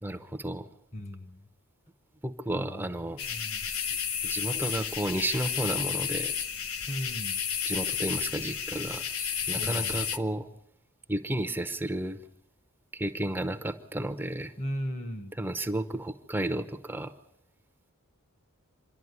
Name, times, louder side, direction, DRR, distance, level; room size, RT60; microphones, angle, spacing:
voice 1, 0.0-0.7 2.2-3.2 4.2-6.3 7.7-10.5 11.1-12.2 12.9-14.5 15.4-17.1, right 1 dB, 10° right, 6 dB, 0.7 m, -32 dB
voice 2, 0.9-1.5 2.5-2.9 3.3-3.7 6.9-7.4 9.5-9.9 14.6-15.4, equal, 35° left, 10 dB, 1.2 m, -37 dB
sound 1, 3.2-10.2, left 8 dB, 85° left, 1.1 m, -32 dB
26.5 x 11.5 x 9.6 m, 0.83 s
head